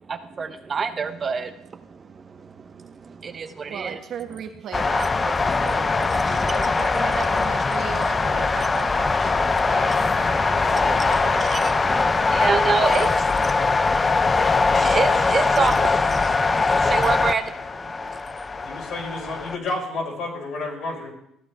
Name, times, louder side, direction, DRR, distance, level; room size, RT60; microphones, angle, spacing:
voice 1, 0.0-4.0 4.3-4.5 4.8-6.8 9.2-10.0 10.2-13.3 13.8-18.2, right 5 dB, 30° right, 10 dB, 0.6 m, -29 dB
voice 2, 3.7-5.3 5.6-9.9 10.5-11.4, right 8 dB, 55° right, 5 dB, 1.3 m, -36 dB
sound 1, 4.7-19.5, left 4 dB, 20° left, 0.4 m, -21 dB
voice 3, 12.5-13.1 15.3-15.7 18.5-21.1, left 2 dB, 65° left, -3 dB, 4.6 m, -32 dB
15.0 x 9.5 x 3.4 m, 0.75 s
cardioid pair, 120°, 0 cm